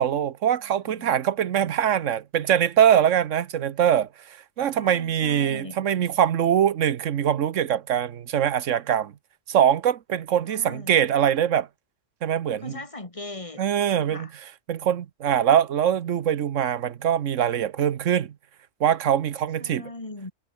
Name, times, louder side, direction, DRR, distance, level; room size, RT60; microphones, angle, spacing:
voice 1, 0.0-9.1 9.5-11.7 12.2-12.8 13.6-14.3 14.7-18.3 18.8-19.9, right 9 dB, 85° right, 1.3 m, -23 dB
voice 2, 0.6-1.2 4.7-5.8 10.4-11.1 12.5-13.6 13.9-14.3 19.6-20.3, left 2 dB, 25° left, 2.4 m, -39 dB
omnidirectional pair, 1.3 m